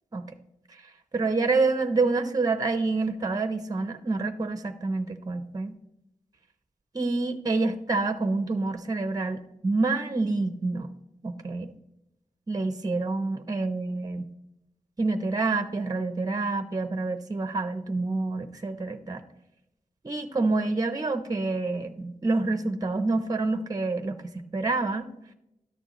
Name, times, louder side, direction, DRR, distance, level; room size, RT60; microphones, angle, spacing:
voice 1, 0.7-5.7 6.9-10.9 11.2-11.7 12.5-14.2 15.0-19.2 20.0-24.2 24.5-25.1, right 3 dB, 25° right, 10 dB, 0.6 m, -27 dB
12.0 x 6.7 x 3.0 m, 0.87 s
wide cardioid pair, 90°, 14 cm